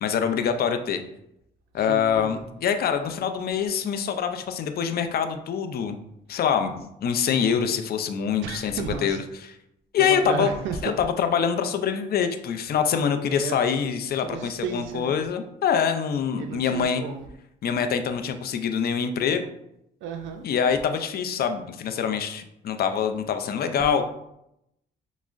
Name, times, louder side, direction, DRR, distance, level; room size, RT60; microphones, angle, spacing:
voice 1, 0.0-1.0 1.7-6.0 6.3-9.2 9.9-10.5 10.8-17.0 17.6-19.4 20.4-24.0, left 7 dB, 50° left, 7 dB, 0.4 m, -25 dB
voice 2, 1.8-2.4 7.3-7.6 8.4-9.2 10.0-10.9 13.2-13.6 14.1-15.2 16.4-17.3 20.0-20.4 23.7-24.0, right 6 dB, 75° right, 5 dB, 0.4 m, -33 dB
6.0 x 2.0 x 2.5 m, 0.80 s
cardioid pair, 90°, 20 cm